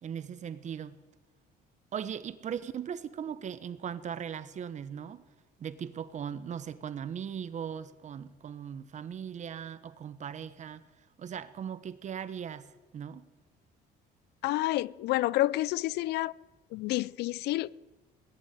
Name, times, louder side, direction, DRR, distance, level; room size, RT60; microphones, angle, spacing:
voice 1, 0.0-1.0 1.9-5.2 5.6-13.3, right 8 dB, 45° right, 1.0 m, -39 dB
voice 2, 14.4-16.3 16.7-17.8, left 17 dB, 80° left, 0.4 m, -29 dB
19.0 x 7.2 x 9.8 m
cardioid pair, 110°, 17 cm